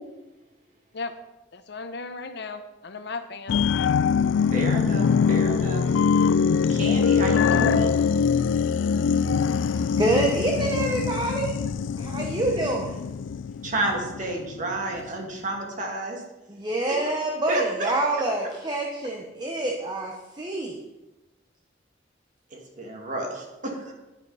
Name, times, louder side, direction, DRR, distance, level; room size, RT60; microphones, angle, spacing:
voice 1, 1.5-3.6, left 3 dB, 65° left, 9 dB, 0.9 m, -36 dB
sound 1, 3.5-14.5 14.9-15.0, left 6 dB, 80° left, 0.3 m, -23 dB
voice 2, 4.5-6.0 6.7-8.0 13.6-16.2 16.9-17.1 17.5-17.9 22.5-23.9, right 2 dB, 45° right, 1 dB, 2.3 m, -30 dB
voice 3, 9.5-11.5 12.0-13.0 16.5-20.8, right 1 dB, 25° right, 1 dB, 1.0 m, -27 dB
11.0 x 10.5 x 4.2 m, 1.1 s
head